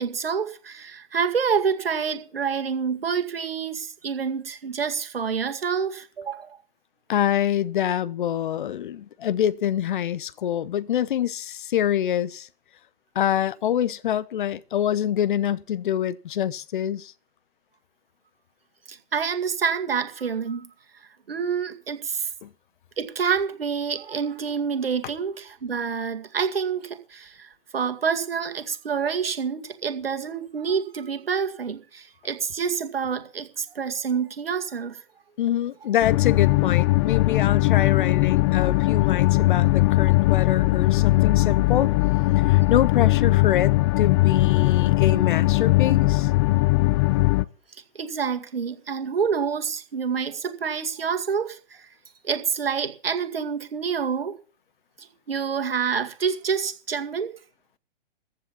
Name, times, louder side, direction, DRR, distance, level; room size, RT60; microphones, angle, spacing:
voice 1, 0.0-6.6 18.9-20.7 21.3-22.3 23.0-35.0 47.9-51.9 52.2-54.4 55.0-57.3, right 6 dB, 75° right, 2.2 m, -27 dB
voice 2, 7.1-12.5 13.1-17.1 22.4-22.5 35.4-41.9 42.4-46.3, left 10 dB, 60° left, 0.9 m, -25 dB
sound 1, 36.0-47.4, left 20 dB, 30° left, 0.6 m, -20 dB
14.5 x 8.9 x 5.7 m
figure-of-eight pair, 120°, 29 cm